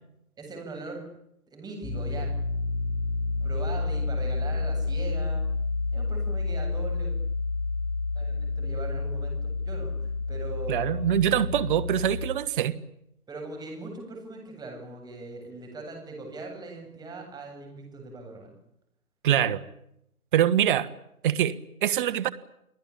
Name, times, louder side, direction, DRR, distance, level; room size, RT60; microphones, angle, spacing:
voice 1, 0.4-1.0 1.5-2.3 3.4-5.4 5.9-7.1 8.1-11.1 13.3-18.5, right 3 dB, 10° right, 2 dB, 7.9 m, -40 dB
sound 1, 1.8-12.3, left 3 dB, 15° left, 7.8 m, -29 dB
voice 2, 10.7-12.7 19.2-19.6 20.3-20.9 21.2-21.5 21.8-22.3, right 10 dB, 35° right, 14 dB, 1.3 m, -24 dB
30.0 x 19.5 x 8.7 m, 0.80 s
figure-of-eight pair, 140°, 44 cm